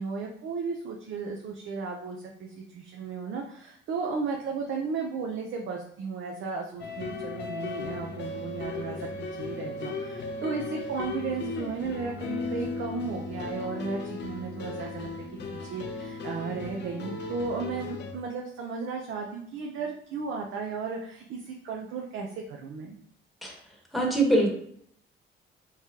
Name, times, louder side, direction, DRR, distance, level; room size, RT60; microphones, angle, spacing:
voice 1, 0.0-15.1 15.5-23.0, right 5 dB, 75° right, 0 dB, 0.6 m, -35 dB
sound 1, 6.8-18.1, left 4 dB, 60° left, 0.6 m, -36 dB
voice 2, 23.9-24.5, right 1 dB, ahead, -1 dB, 1.1 m, -23 dB
3.6 x 3.2 x 2.8 m, 0.65 s
cardioid pair, 90°, 20 cm